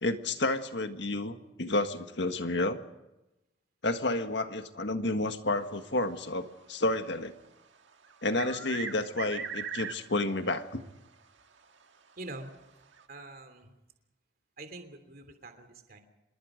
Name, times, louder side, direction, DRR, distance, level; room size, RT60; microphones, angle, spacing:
voice 1, 0.0-2.8 3.8-7.3 8.2-10.8, left 2 dB, 65° left, 7 dB, 1.7 m, -30 dB
sound 1, 8.0-10.3 10.6-10.7 11.6-11.7 12.9-13.0, right 5 dB, 75° right, 1.7 m, -38 dB
voice 2, 12.2-12.5 13.1-13.8 14.6-16.0, right 2 dB, 50° right, 7 dB, 3.1 m, -45 dB
26.5 x 21.5 x 5.2 m, 0.96 s
head